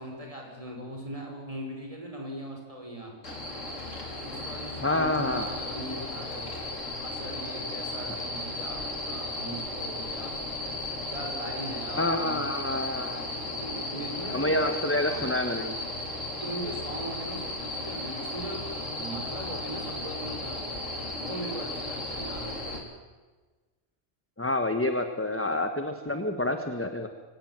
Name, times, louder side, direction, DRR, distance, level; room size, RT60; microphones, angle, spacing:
voice 1, 0.0-3.2 4.3-6.6 7.0-10.3 11.1-12.4 12.9-14.8 15.0-15.4 16.3-18.6 19.0-20.6 21.2-22.8, right 1 dB, 25° right, 1 dB, 5.9 m, -39 dB
sound 1, 3.2-22.8, left 2 dB, 85° left, 4.1 m, -35 dB
voice 2, 4.8-5.4 12.0-13.2 14.3-15.7 24.4-27.1, left 1 dB, 10° left, 6 dB, 1.3 m, -28 dB
25.5 x 17.0 x 7.7 m, 1.3 s
omnidirectional pair, 1.3 m